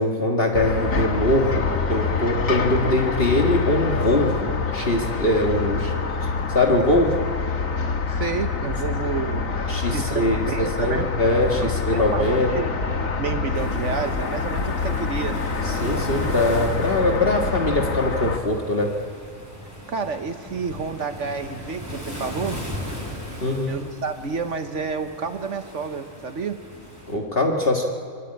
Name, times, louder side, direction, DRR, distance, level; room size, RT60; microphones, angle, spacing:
voice 1, 0.0-5.9 6.5-7.2 9.7-12.5 15.6-18.9 23.4-23.7 27.1-27.8, left 1 dB, 45° left, 1 dB, 2.0 m, -22 dB
sound 1, 0.5-18.4, left 4 dB, 80° left, 2.1 m, -26 dB
voice 2, 8.1-11.1 11.9-12.7 13.2-15.4 19.9-22.6 23.7-26.6, right 5 dB, 65° right, 8 dB, 1.4 m, -30 dB
Waves surf, 13.5-27.1, equal, 10° right, 5.5 m, -38 dB
27.0 x 21.5 x 8.7 m, 2.1 s
omnidirectional pair, 1.4 m